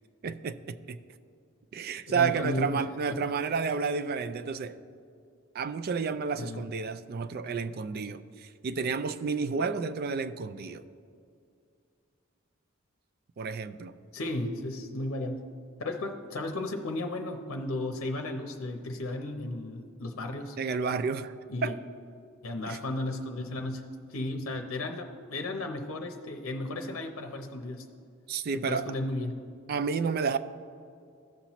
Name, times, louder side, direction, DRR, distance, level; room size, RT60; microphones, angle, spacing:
voice 1, 0.2-1.0 1.7-4.8 5.5-10.8 13.4-13.9 20.6-21.3 21.6-21.8 22.7-22.8 28.3-28.9 29.7-30.4, right 5 dB, 45° right, 12 dB, 0.3 m, -31 dB
voice 2, 2.1-2.7 3.1-3.3 6.4-6.6 14.1-15.5 15.8-20.6 21.5-21.7 22.4-27.8 28.5-29.4, left 2 dB, 75° left, 5 dB, 0.7 m, -34 dB
15.0 x 5.7 x 3.0 m, 2.4 s
head